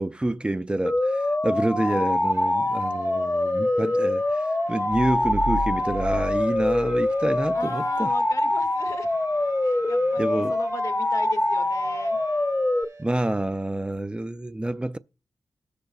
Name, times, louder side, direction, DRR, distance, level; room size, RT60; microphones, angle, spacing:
voice 1, 0.0-8.1 10.2-10.5 13.0-15.0, right 1 dB, 15° right, 0.4 m, -28 dB
sound 1, 0.8-12.8, left 1 dB, 20° left, 0.7 m, -24 dB
sound 2, 2.0-13.0, right 3 dB, 80° right, 4.6 m, -48 dB
sound 3, 5.2-7.7, right 1 dB, 60° right, 1.9 m, -33 dB
voice 2, 7.5-9.1 9.6-12.2, left 4 dB, 65° left, 0.9 m, -38 dB
19.0 x 6.6 x 2.3 m
cardioid pair, 60°, 6 cm